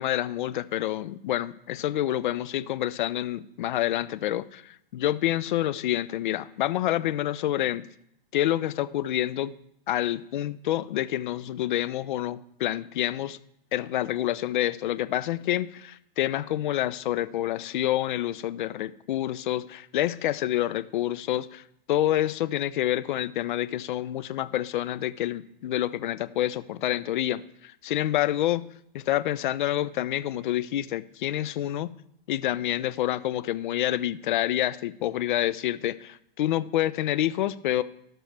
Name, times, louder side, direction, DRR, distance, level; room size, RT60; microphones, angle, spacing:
voice 1, 0.0-7.8 8.3-9.5 9.9-13.4 13.7-28.6 28.9-31.9 32.3-37.8, left 13 dB, 55° left, 16 dB, 0.5 m, -28 dB
16.5 x 6.1 x 3.4 m, 0.74 s
hypercardioid pair, 130°, 29 cm